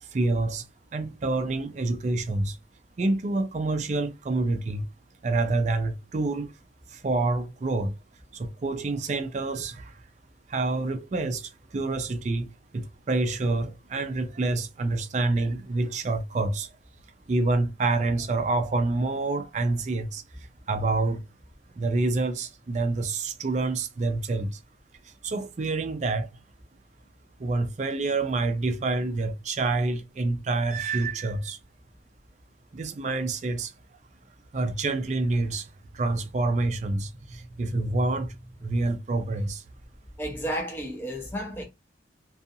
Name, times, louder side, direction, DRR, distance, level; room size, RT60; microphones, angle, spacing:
voice 1, 0.0-0.7 0.9-2.6 3.0-4.8 5.2-6.5 6.9-7.9 8.3-10.0 10.5-12.5 12.7-16.7 17.3-21.2 21.8-24.6 25.0-26.3 27.4-31.6 32.7-33.7 34.5-39.6, right 2 dB, 40° right, 0.4 m, -27 dB
voice 2, 40.2-41.6, equal, 10° left, 0.5 m, -32 dB
2.5 x 2.3 x 2.6 m
head